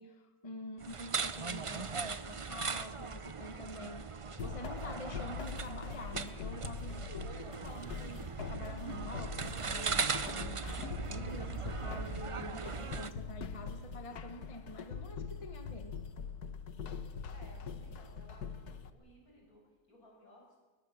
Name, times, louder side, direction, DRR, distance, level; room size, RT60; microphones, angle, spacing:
voice 1, 0.0-16.0, left 1 dB, 20° left, 7 dB, 1.4 m, -47 dB
sound 1, 0.8-13.1, right 5 dB, 40° right, 0.4 m, -39 dB
sound 2, 4.4-18.9, left 5 dB, 85° left, 1.7 m, -43 dB
voice 2, 17.3-20.6, equal, 70° left, -1 dB, 7.3 m, -60 dB
21.5 x 21.0 x 7.2 m, 1.3 s
omnidirectional pair, 1.6 m